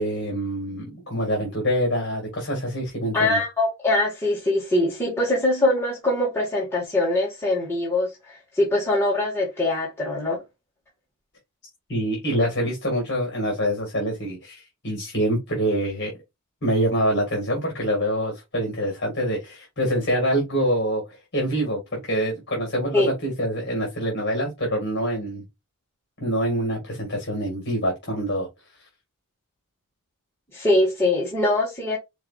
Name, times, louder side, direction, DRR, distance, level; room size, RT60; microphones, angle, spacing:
voice 1, 0.0-3.4 11.9-16.1 16.6-25.4 26.2-28.5, equal, 50° left, 1.8 m, -25 dB
voice 2, 3.1-8.1 8.5-10.4 22.9-23.1 30.5-32.0, left 2 dB, 10° left, 1.5 m, -22 dB
4.7 x 4.0 x 2.3 m
head